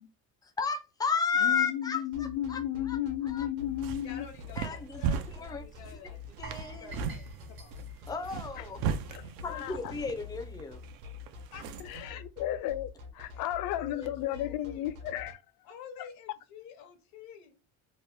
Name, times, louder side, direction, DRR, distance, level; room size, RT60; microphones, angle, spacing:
voice 1, 0.6-3.5 4.6-5.0 5.3-5.7 6.4-7.1 8.1-8.8 9.4-10.8, left 6 dB, 10° left, 0.3 m, -33 dB
voice 2, 1.4-4.3 8.6-8.7 9.1-9.9 11.9-15.4, left 12 dB, 70° left, 0.5 m, -34 dB
sound 1, 2.1-15.3, left 5 dB, 60° right, 0.9 m, -46 dB
sound 2, 3.6-12.1, right 7 dB, 80° right, 0.5 m, -38 dB
voice 3, 4.0-6.4 6.8-8.1 8.5-8.6 9.0-9.4 11.5-12.2 13.2-14.9 15.6-17.6, left 7 dB, 90° left, 0.8 m, -49 dB
sound 3, 6.4-9.4 9.7-9.9 10.4-10.5, right 5 dB, 35° right, 0.6 m, -50 dB
2.9 x 2.2 x 3.2 m
cardioid pair, 145°, 35 cm